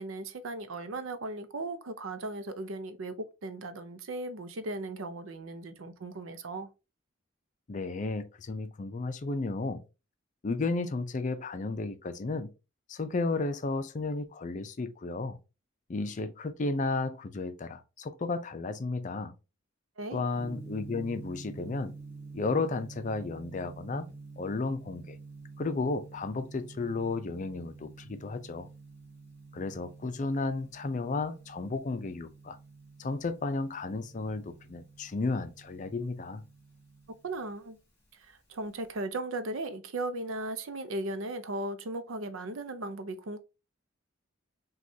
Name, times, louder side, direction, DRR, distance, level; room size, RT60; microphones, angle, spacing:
voice 1, 0.0-3.1 3.4-6.7 20.0-20.2 37.2-37.8 38.1-43.4, right 2 dB, 85° right, 0.6 m, -37 dB
voice 2, 7.7-9.8 10.4-12.5 12.9-15.4 15.9-19.3 20.1-21.9 22.3-24.1 24.4-25.2 25.6-28.7 29.5-32.6 33.0-36.4, left 3 dB, 40° left, 0.4 m, -33 dB
Gong, 20.3-38.9, right 4 dB, 15° left, 1.8 m, -49 dB
6.1 x 2.3 x 2.7 m
head